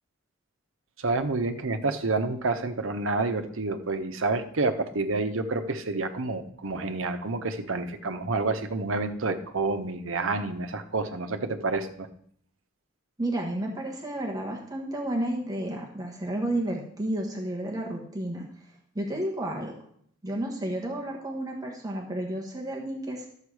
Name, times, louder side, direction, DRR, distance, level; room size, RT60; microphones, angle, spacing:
voice 1, 1.0-12.1, right 3 dB, 90° right, 7 dB, 0.9 m, -29 dB
voice 2, 13.2-18.5 18.9-19.7 20.2-23.3, right 1 dB, 20° right, -1 dB, 1.3 m, -31 dB
11.5 x 7.4 x 4.8 m, 0.64 s
head